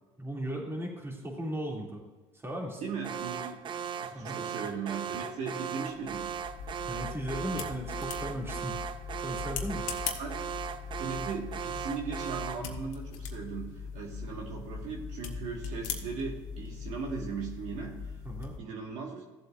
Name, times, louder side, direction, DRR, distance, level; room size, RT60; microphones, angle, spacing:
voice 1, 0.2-2.0 2.3-2.8 4.1-4.4 6.9-8.8 9.2-9.9 18.2-18.6, equal, 20° right, -1 dB, 2.7 m, -36 dB
voice 2, 2.8-3.6 4.0-6.4 10.2-10.5 10.9-18.2 18.6-19.2, right 5 dB, 65° right, -1 dB, 1.8 m, -38 dB
Alarm, 3.0-12.7, right 8 dB, 40° right, 0.6 m, -38 dB
sound 1, 5.9-18.6, left 6 dB, 80° left, 1.4 m, -40 dB
15.0 x 7.8 x 2.6 m, 1.2 s
supercardioid pair, 90°, 13 cm